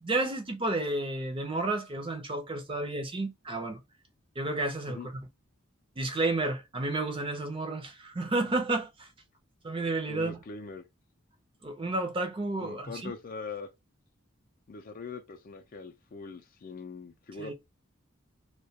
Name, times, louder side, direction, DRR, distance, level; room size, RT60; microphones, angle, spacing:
voice 1, 0.0-3.8 4.4-5.1 6.0-9.1 9.6-10.4 11.6-13.1 17.4-17.5, right 2 dB, 25° right, 0.5 m, -31 dB
voice 2, 10.1-10.8 12.6-13.7 14.7-17.5, left 4 dB, 40° left, 0.4 m, -42 dB
2.2 x 2.1 x 2.7 m
head